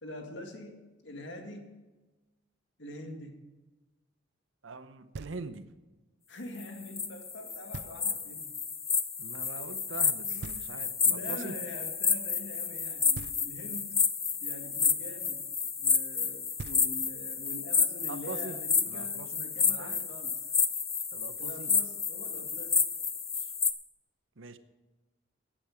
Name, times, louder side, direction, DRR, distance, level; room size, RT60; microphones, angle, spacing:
voice 1, 0.0-1.8 2.8-3.5 6.3-8.6 10.3-14.0 14.4-15.5 15.8-20.4 21.4-22.8, left 1 dB, 70° left, 4 dB, 2.1 m, -45 dB
voice 2, 4.6-5.7 9.2-11.6 18.0-18.6 18.9-20.1 21.1-21.7 24.4-24.6, right 3 dB, 90° right, 11 dB, 0.9 m, -43 dB
Knock, 5.1-5.8 7.7-8.4 10.4-11.2 13.1-13.9 16.2-16.3 16.6-17.4, right 4 dB, 55° right, 0.4 m, -45 dB
sound 1, 6.6-23.7, left 6 dB, 15° left, 0.6 m, -30 dB
14.5 x 10.0 x 4.9 m, 1.2 s
head